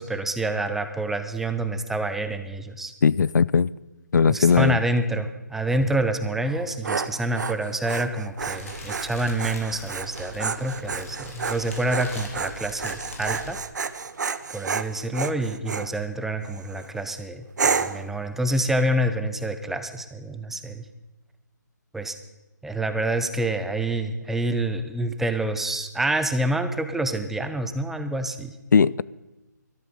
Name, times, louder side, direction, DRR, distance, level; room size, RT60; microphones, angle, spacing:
voice 1, 0.0-2.9 4.3-13.6 14.5-20.8 21.9-22.1 22.6-28.5, right 1 dB, 5° right, 0.6 m, -27 dB
voice 2, 3.0-3.7 4.1-4.8 28.7-29.0, left 6 dB, 70° left, 0.4 m, -18 dB
Dog, 6.5-15.9 16.5-16.9 17.6-18.1, right 5 dB, 70° right, 0.8 m, -30 dB
Fire, 8.4-13.5, left 1 dB, 50° left, 3.5 m, -40 dB
13.0 x 13.0 x 5.4 m
figure-of-eight pair, 150°, 10 cm